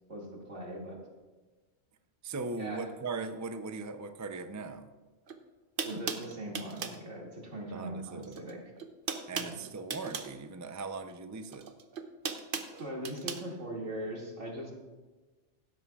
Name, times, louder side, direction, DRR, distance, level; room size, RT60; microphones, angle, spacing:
voice 1, 0.1-1.0 2.6-2.9 5.8-8.6 9.3-9.6 12.8-14.7, right 1 dB, 80° right, -2 dB, 2.6 m, -40 dB
voice 2, 2.2-4.9 7.7-8.4 9.3-11.7, right 4 dB, 25° right, 8 dB, 0.4 m, -39 dB
sound 1, 5.3-5.4 5.8-7.0 8.2-8.5 8.8-10.3 11.5-13.4, right 5 dB, 55° right, 0.9 m, -37 dB
16.0 x 12.5 x 2.4 m, 1.2 s
omnidirectional pair, 1.2 m